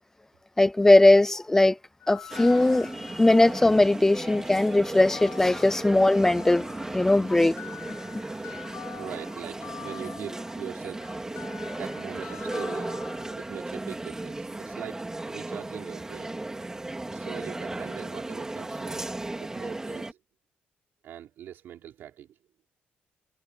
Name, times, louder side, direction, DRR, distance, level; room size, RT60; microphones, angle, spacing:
voice 1, 0.6-1.8 2.1-7.6, left 2 dB, 10° left, 0.5 m, -20 dB
sound 1, 2.0-13.3, left 10 dB, 80° left, 4.9 m, -45 dB
sound 2, 2.3-20.1, right 2 dB, 15° right, 3.5 m, -36 dB
voice 2, 9.0-11.1 11.8-13.0 13.3-16.3 17.1-19.1 19.4-20.2 21.0-22.3, right 11 dB, 80° right, 4.2 m, -42 dB
cardioid pair, 105°, 4 cm